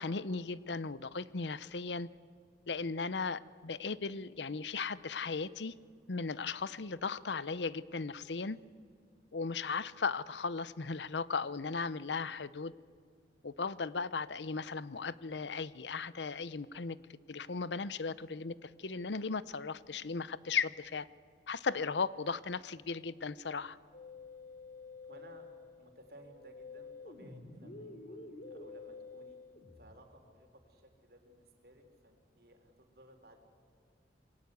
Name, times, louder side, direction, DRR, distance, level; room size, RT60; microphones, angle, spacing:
voice 1, 0.0-2.1 2.7-5.7 6.1-8.6 9.3-12.7 13.4-17.0 17.3-21.1 21.5-23.8, left 4 dB, 80° left, 17 dB, 0.8 m, -36 dB
Musical instrument, 23.9-30.0, left 3 dB, 50° left, 3.6 m, -49 dB
voice 2, 25.0-29.4 29.8-33.4, right 1 dB, 60° right, 5 dB, 4.0 m, -59 dB
27.0 x 22.0 x 8.4 m, 2.1 s
head